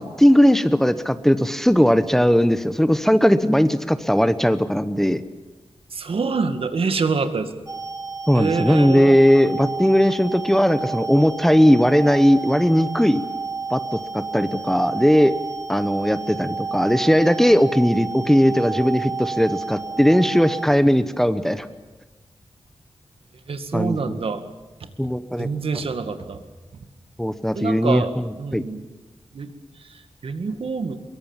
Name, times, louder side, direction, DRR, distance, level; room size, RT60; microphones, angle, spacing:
voice 1, 0.0-5.2 8.3-13.2 13.7-15.3 15.7-21.7 23.7-24.2 25.0-25.5 27.2-28.0 28.5-28.6, equal, 5° left, 11 dB, 0.9 m, -18 dB
voice 2, 5.9-7.5 8.3-9.2 23.5-24.4 25.4-26.4 27.5-28.1 28.4-28.8 29.3-29.5 29.8-31.0, right 4 dB, 70° right, 8 dB, 2.1 m, -26 dB
sound 1, 7.7-20.7, right 4 dB, 35° right, 1.8 m, -31 dB
24.0 x 22.5 x 7.3 m, 1.2 s
wide cardioid pair, 120°, 10 cm